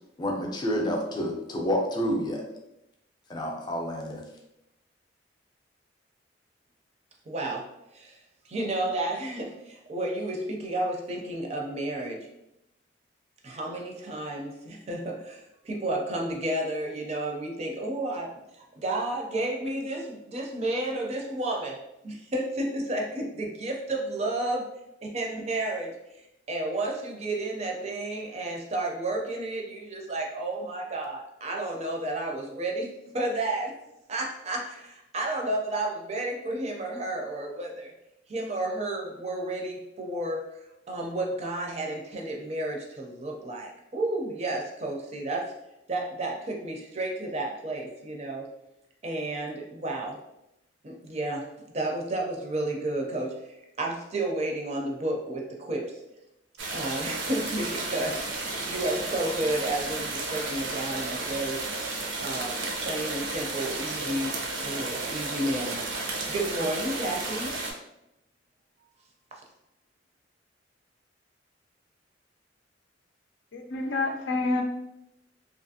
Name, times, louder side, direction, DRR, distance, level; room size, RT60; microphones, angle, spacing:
voice 1, 0.2-2.4 3.3-4.2, equal, 25° left, 0 dB, 0.4 m, -29 dB
voice 2, 7.3-7.6 7.9-12.3 13.4-21.8 22.0-24.6 25.0-26.2 26.5-33.7 34.1-37.9 38.3-40.4 40.9-45.5 45.9-48.5 49.0-50.2 50.8-51.5 51.7-56.0 56.7-61.6 62.2-67.5 69.3-69.4, right 1 dB, 35° right, 0 dB, 0.4 m, -32 dB
sound 1, 56.6-67.7, right 3 dB, 85° right, 0.5 m, -33 dB
voice 3, 73.5-74.6, left 3 dB, 85° left, 2 dB, 0.5 m, -28 dB
2.7 x 2.4 x 2.6 m, 0.86 s
head